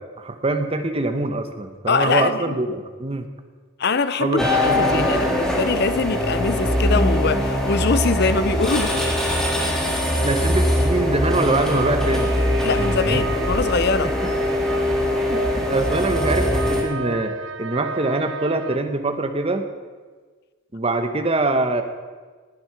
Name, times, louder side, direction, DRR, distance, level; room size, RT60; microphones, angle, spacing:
voice 1, 0.0-3.3 4.2-5.4 10.2-12.3 13.1-13.2 14.0-14.3 15.3-19.7 20.7-21.8, right 2 dB, 25° right, 7 dB, 1.0 m, -24 dB
voice 2, 1.9-2.5 3.8-9.0 12.6-14.1, left 4 dB, 50° left, 13 dB, 0.7 m, -23 dB
sound 1, 4.4-16.8, left 1 dB, ahead, 1.9 m, -22 dB
sound 2, 11.3-18.8, right 4 dB, 60° right, 0.7 m, -33 dB
19.0 x 7.9 x 5.9 m, 1.4 s
head